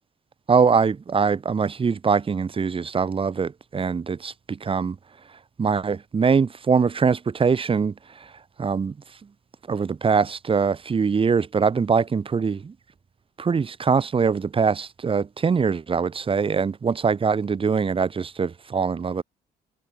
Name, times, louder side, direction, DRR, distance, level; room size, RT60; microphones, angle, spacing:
voice 1, 0.5-5.0 5.6-7.9 8.6-8.9 9.7-12.7 13.4-19.2, right 5 dB, 30° right, 7.9 m, -22 dB
cardioid pair, 110°, 17 cm